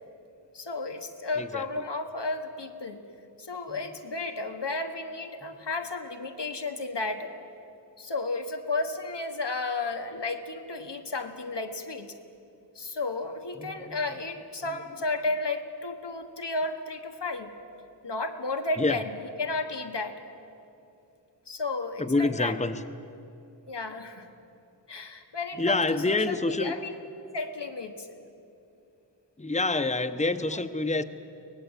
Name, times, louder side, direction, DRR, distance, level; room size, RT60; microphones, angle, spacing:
voice 1, 0.5-3.0 3.4-7.3 8.0-12.2 12.7-17.5 18.0-19.1 19.4-20.2 21.5-22.6 23.7-24.3 24.9-26.9 27.3-28.2 30.5-30.6, left 3 dB, 85° left, 6 dB, 1.5 m, -33 dB
voice 2, 13.6-14.0 18.8-19.0 22.0-22.8 25.6-26.7 29.4-31.0, left 3 dB, 15° left, 8 dB, 0.8 m, -27 dB
23.5 x 18.5 x 8.2 m, 2.7 s
wide cardioid pair, 50°, 41 cm